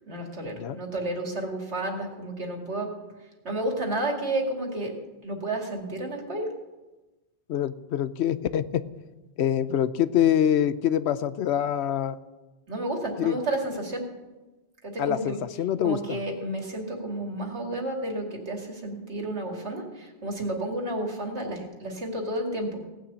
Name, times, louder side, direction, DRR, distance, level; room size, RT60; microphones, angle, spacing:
voice 1, 0.1-2.9 3.4-4.9 5.2-6.5 12.7-14.1 14.8-15.4 15.8-22.9, right 1 dB, 85° right, 1 dB, 2.6 m, -31 dB
voice 2, 7.5-8.8 9.4-12.2 13.2-13.4 15.0-16.2, left 10 dB, 80° left, 14 dB, 0.9 m, -25 dB
17.5 x 6.3 x 8.2 m, 1.1 s
omnidirectional pair, 1.1 m